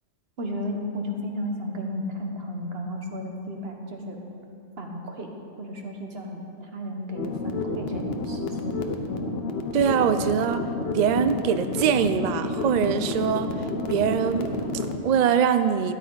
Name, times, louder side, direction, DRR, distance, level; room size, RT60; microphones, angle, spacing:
voice 1, 0.4-4.2 4.8-5.3 5.6-8.6, equal, 50° right, 2 dB, 1.4 m, -33 dB
sound 1, 7.1-15.0, left 3 dB, 55° left, 1.0 m, -30 dB
voice 2, 9.7-13.6 13.9-15.9, right 8 dB, 85° right, 10 dB, 0.3 m, -23 dB
13.0 x 10.5 x 3.9 m, 2.6 s
omnidirectional pair, 1.3 m